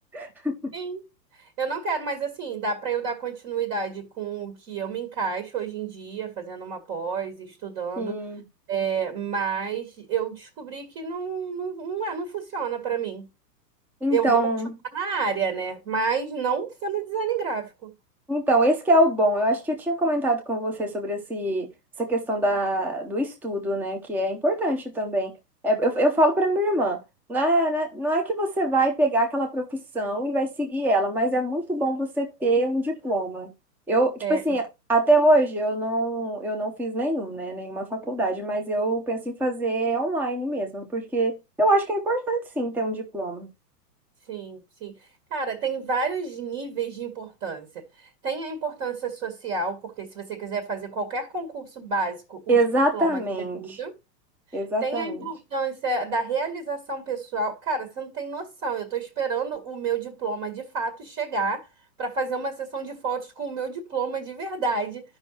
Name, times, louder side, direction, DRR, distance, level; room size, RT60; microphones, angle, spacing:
voice 1, 0.1-0.7 8.0-8.4 14.0-14.7 18.3-21.7 22.0-25.3 25.6-27.0 27.3-33.5 33.9-43.5 52.5-53.8 54.5-55.3, right 1 dB, 5° right, 0.7 m, -24 dB
voice 2, 1.4-8.2 8.7-13.3 14.1-14.4 14.9-17.9 34.2-34.4 44.3-44.9 45.3-52.6 52.9-53.9 54.8-61.7 62.0-65.0, right 5 dB, 35° right, 1.9 m, -30 dB
13.5 x 5.5 x 2.8 m
hypercardioid pair, 130°, 49 cm